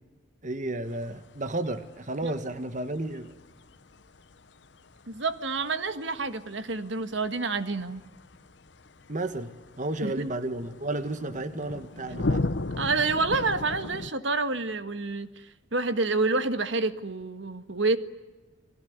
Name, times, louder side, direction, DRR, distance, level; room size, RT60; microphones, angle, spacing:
voice 1, 0.4-3.3 9.1-9.5 9.8-12.5, right 2 dB, 40° right, 10 dB, 1.4 m, -32 dB
sound 1, 0.9-14.1, left 2 dB, 60° left, 0.9 m, -37 dB
voice 2, 5.1-8.0 10.0-10.1 12.8-18.0, right 3 dB, 70° right, 10 dB, 1.7 m, -28 dB
29.5 x 20.5 x 9.5 m, 1.2 s
head